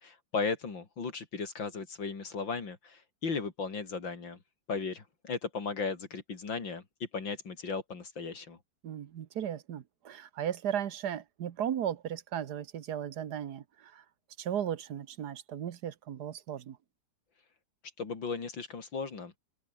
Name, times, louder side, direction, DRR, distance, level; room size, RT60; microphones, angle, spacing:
voice 1, 0.0-4.4 4.7-6.8 7.1-8.6 18.0-19.4, left 4 dB, 85° left, 4.0 m, -36 dB
voice 2, 8.8-14.0 14.4-16.8, right 9 dB, 60° right, 1.6 m, -36 dB
omnidirectional pair, 2.0 m